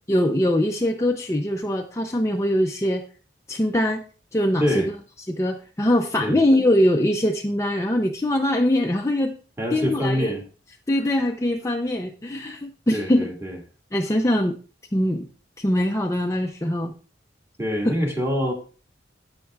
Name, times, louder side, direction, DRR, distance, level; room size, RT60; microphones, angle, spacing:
voice 1, 0.1-3.0 3.5-4.0 4.3-4.8 5.3-9.4 9.7-10.3 10.9-13.3 13.9-14.6 14.9-15.2 15.6-16.9 17.8-17.9, left 1 dB, 15° left, 3 dB, 0.5 m, -22 dB
voice 2, 4.6-4.9 6.2-6.4 9.6-10.4 12.9-13.6 17.6-18.5, equal, 15° right, 1 dB, 1.9 m, -25 dB
13.0 x 8.8 x 2.3 m, 0.37 s
head